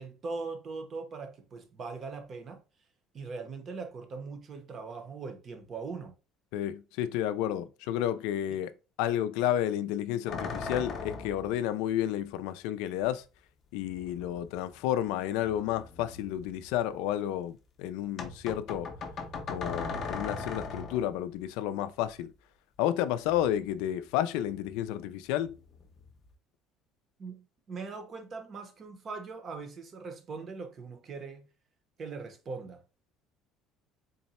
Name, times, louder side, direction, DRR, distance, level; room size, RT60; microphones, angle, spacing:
voice 1, 0.0-2.6 3.1-6.1 27.2-31.5 32.0-32.8, right 4 dB, 30° right, 0.7 m, -40 dB
voice 2, 6.5-8.7 9.0-13.2 13.7-18.9 19.5-22.3 22.8-25.6, left 11 dB, 90° left, 0.3 m, -31 dB
sound 1, 10.3-11.5 13.0-13.1 13.8-15.0 15.4-16.9 18.2-21.2 23.2-24.1 24.4-24.9 25.3-26.3, left 4 dB, 35° left, 0.6 m, -40 dB
3.9 x 2.1 x 4.1 m
cardioid pair, 170°, 0 cm